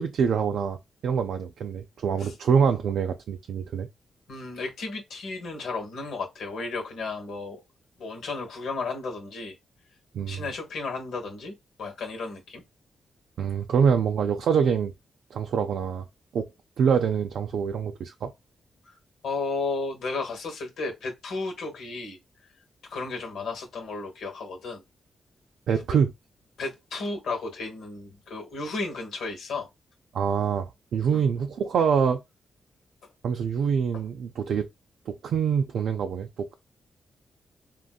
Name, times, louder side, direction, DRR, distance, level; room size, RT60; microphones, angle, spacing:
voice 1, 0.0-3.9 10.1-10.5 13.4-14.9 15.3-16.1 16.3-16.5 16.8-18.3 25.7-26.1 30.1-32.2 33.2-34.7 35.1-36.5, right 7 dB, 80° right, 0.4 m, -25 dB
voice 2, 4.3-7.6 8.0-9.6 10.3-12.6 18.8-19.0 19.2-22.2 22.8-24.8 26.6-29.7 31.1-31.2, left 3 dB, 80° left, 1.2 m, -33 dB
3.7 x 2.5 x 2.3 m
cardioid pair, 60°, 0 cm